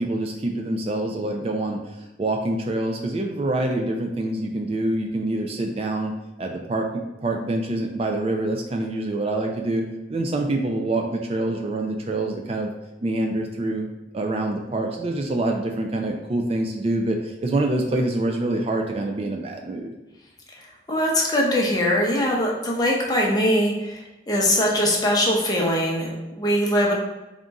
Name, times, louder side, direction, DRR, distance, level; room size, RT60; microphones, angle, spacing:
voice 1, 0.0-1.8 2.2-12.7 13.0-13.9 14.1-19.9, right 2 dB, 35° right, 2 dB, 0.3 m, -26 dB
voice 2, 20.9-26.9, equal, 20° left, -2 dB, 0.7 m, -22 dB
3.6 x 2.4 x 4.0 m, 1.0 s
head